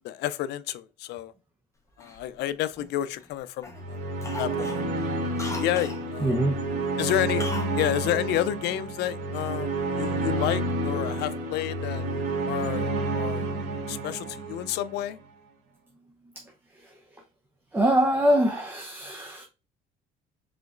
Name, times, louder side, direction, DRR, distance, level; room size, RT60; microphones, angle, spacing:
voice 1, 0.0-1.3 2.0-4.0 4.4-4.8 5.5-6.4 7.0-7.5 7.8-12.0 12.5-13.5 13.9-15.2, left 13 dB, 80° left, 0.5 m, -30 dB
Cough, 2.0-3.3 3.6-3.9 4.2-6.0 7.4-7.8 8.0-8.1, left 3 dB, 15° left, 1.1 m, -39 dB
sound 1, 3.7-15.0, right 2 dB, 85° right, 2.6 m, -30 dB
voice 2, 6.2-6.7 17.7-19.4, right 1 dB, 10° right, 0.7 m, -23 dB
4.9 x 3.9 x 2.5 m
cardioid pair, 110°, 17 cm